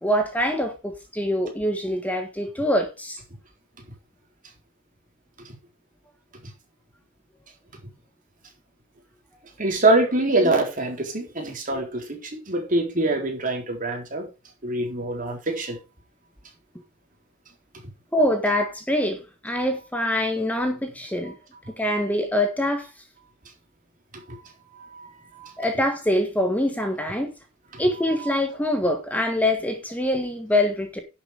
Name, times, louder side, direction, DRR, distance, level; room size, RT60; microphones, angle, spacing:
voice 1, 0.0-3.2 18.1-19.2 19.4-21.3 21.8-22.9 25.6-27.3 27.8-31.0, left 1 dB, 10° left, 1.6 m, -24 dB
voice 2, 9.6-14.3 14.6-15.8 24.3-24.4 25.4-25.5, right 2 dB, 40° right, 4.0 m, -24 dB
11.0 x 7.3 x 4.9 m
head